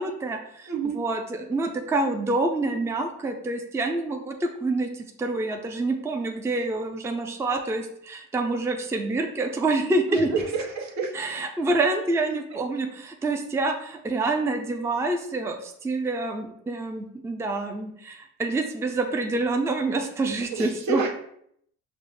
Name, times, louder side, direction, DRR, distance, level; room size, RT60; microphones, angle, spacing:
voice 1, 0.0-10.3 11.1-21.0, right 2 dB, 10° right, 4 dB, 0.4 m, -27 dB
voice 2, 10.1-11.1 20.5-21.1, right 5 dB, 65° right, 0 dB, 0.9 m, -28 dB
5.1 x 2.0 x 3.3 m, 0.70 s
cardioid pair, 90°, 30 cm